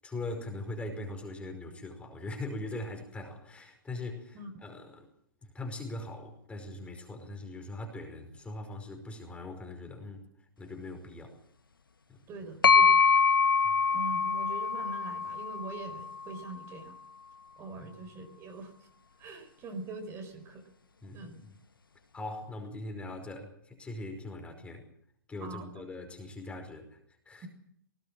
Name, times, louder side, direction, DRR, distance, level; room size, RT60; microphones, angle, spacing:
voice 1, 0.0-5.1 5.5-10.2 10.6-11.4 12.1-12.2 13.6-13.8 17.8-17.9 21.0-21.5 22.1-24.8 25.3-27.0 27.2-27.5, left 2 dB, 10° left, 4 dB, 5.2 m, -41 dB
voice 2, 12.3-13.0 13.9-17.0 17.6-18.7 19.2-20.6 21.1-21.4 25.4-25.8 27.4-27.5, right 3 dB, 25° right, 6 dB, 4.8 m, -43 dB
sound 1, 12.6-16.4, left 5 dB, 85° left, 1.5 m, -25 dB
19.5 x 19.0 x 7.6 m, 0.69 s
hypercardioid pair, 120°, 11 cm